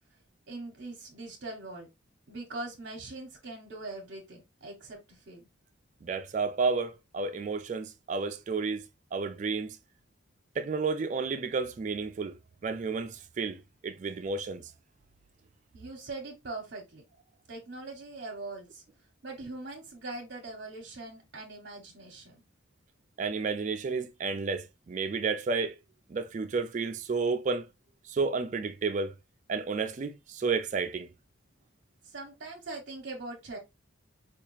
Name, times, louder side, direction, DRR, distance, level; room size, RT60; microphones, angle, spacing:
voice 1, 0.5-1.9 2.3-5.4 15.7-17.0 17.5-18.8 19.2-22.4 32.0-33.6, right 2 dB, 55° right, 0.8 m, -42 dB
voice 2, 6.0-8.8 9.1-9.8 10.6-12.4 12.6-14.6 23.2-25.8 26.1-27.7 28.1-29.1 29.5-31.1, right 4 dB, 35° right, 0.3 m, -31 dB
4.4 x 2.4 x 3.0 m
head